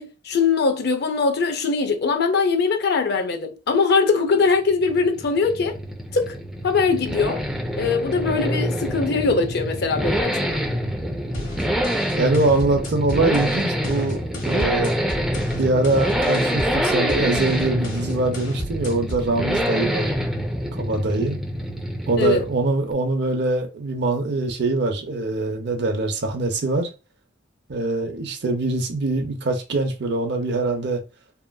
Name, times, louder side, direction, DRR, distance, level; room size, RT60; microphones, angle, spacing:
voice 1, 0.0-5.8 6.1-6.4 6.6-7.4 7.7-10.6 22.2-22.4, left 4 dB, 60° left, 0.5 m, -21 dB
Accelerating revving vroom, 4.5-22.7 22.9-23.0, equal, ahead, 0.4 m, -26 dB
sound 1, 11.3-19.3, left 1 dB, 85° left, 1.1 m, -34 dB
voice 2, 12.2-14.2 14.4-14.9 15.5-20.1 20.7-21.4 22.1-26.9 27.7-31.0, right 2 dB, 60° right, 0.6 m, -23 dB
2.8 x 2.5 x 2.2 m
head